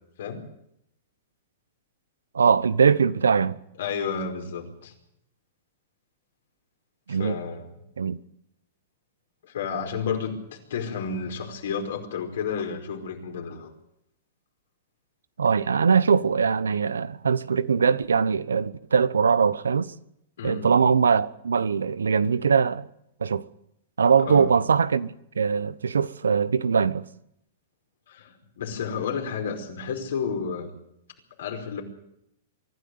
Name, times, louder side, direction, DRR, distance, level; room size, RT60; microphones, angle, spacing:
voice 1, 2.3-3.6 7.1-7.4 8.0-8.2 15.4-19.9 20.4-22.8 23.2-23.4 24.0-25.1 25.4-27.1, right 6 dB, 90° right, 0.9 m, -21 dB
voice 2, 3.8-4.9 7.1-7.7 9.4-13.7 20.4-20.7 24.2-24.5 28.1-30.7 31.4-31.8, left 6 dB, 70° left, 5.0 m, -31 dB
24.5 x 12.0 x 9.5 m
hypercardioid pair, 115°, 0 cm